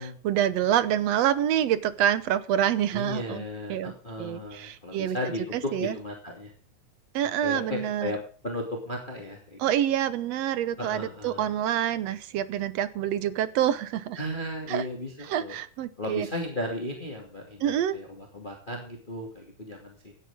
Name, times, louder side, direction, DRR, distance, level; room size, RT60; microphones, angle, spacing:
voice 1, 0.0-3.4 3.7-3.9 4.2-5.2 5.5-6.0 7.1-8.1 9.6-14.2 14.7-14.8 15.3-16.3 17.6-18.0, right 10 dB, 70° right, 14 dB, 1.8 m, -27 dB
voice 2, 2.9-6.5 7.4-8.2 8.4-9.6 10.8-11.5 14.2-15.5 16.0-20.1, left 1 dB, 15° left, 0 dB, 2.5 m, -35 dB
17.0 x 10.5 x 3.7 m, 0.43 s
omnidirectional pair, 3.5 m